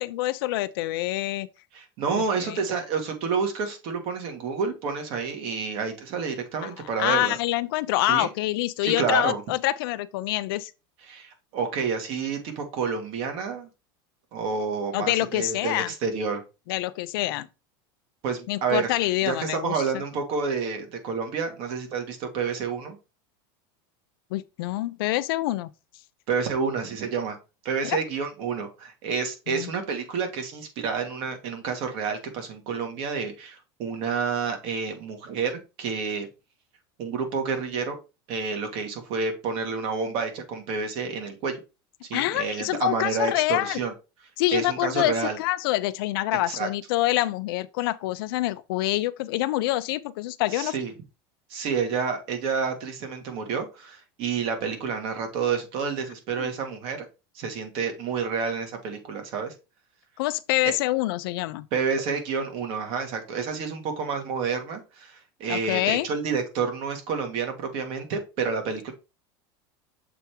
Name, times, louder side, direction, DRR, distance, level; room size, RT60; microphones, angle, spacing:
voice 1, 0.0-1.5 2.2-2.6 6.6-6.7 7.0-10.7 14.9-15.9 16.7-17.5 18.5-19.7 24.3-25.7 27.8-28.0 29.5-29.7 42.1-43.8 44.4-50.7 56.4-56.5 60.2-61.7 65.5-66.1, left 17 dB, 75° left, 0.5 m, -26 dB
voice 2, 1.7-7.4 8.1-8.3 8.8-9.4 11.1-13.7 14.3-16.4 18.2-23.0 26.3-27.4 27.7-36.3 37.0-38.0 38.3-41.6 42.1-43.9 44.5-45.4 46.4-46.7 50.5-50.9 51.5-57.1 57.4-59.5 60.6-60.7 61.7-68.9, right 5 dB, 50° right, 1.8 m, -29 dB
6.9 x 3.4 x 4.5 m
supercardioid pair, 155°, 12 cm